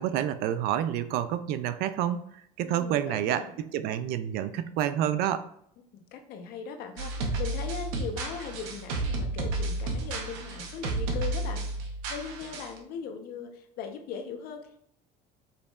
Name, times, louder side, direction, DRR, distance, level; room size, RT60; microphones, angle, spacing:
voice 1, 0.0-2.3 2.6-5.5, right 10 dB, 65° right, 13 dB, 0.4 m, -28 dB
voice 2, 2.6-3.5 6.1-11.7 12.1-14.8, left 6 dB, 60° left, 5 dB, 0.8 m, -39 dB
sound 1, 7.0-12.8, right 2 dB, 90° right, 0.8 m, -32 dB
5.5 x 4.0 x 2.3 m, 0.70 s
cardioid pair, 125°, 17 cm